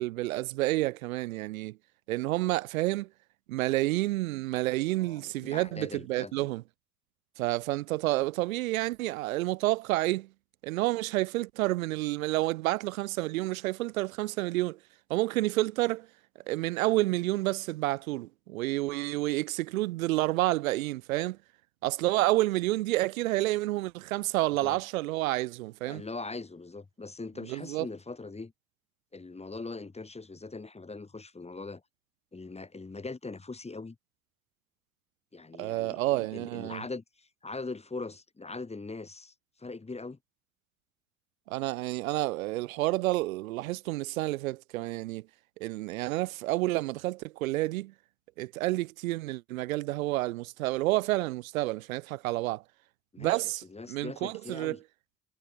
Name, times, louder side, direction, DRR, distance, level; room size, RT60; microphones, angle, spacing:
voice 1, 0.0-1.8 2.1-3.1 3.5-6.6 7.4-10.3 10.6-14.8 15.1-16.1 16.5-21.4 21.8-26.0 27.5-27.9 35.6-36.8 41.5-45.2 45.6-47.9 48.4-52.6 53.2-54.8, right 18 dB, 80° right, 0.7 m, -29 dB
voice 2, 5.0-6.5 24.6-24.8 25.8-28.5 29.1-31.8 32.3-34.0 35.3-39.3 39.6-40.2 53.1-54.8, left 3 dB, 15° left, 1.2 m, -41 dB
figure-of-eight pair, 50°, 41 cm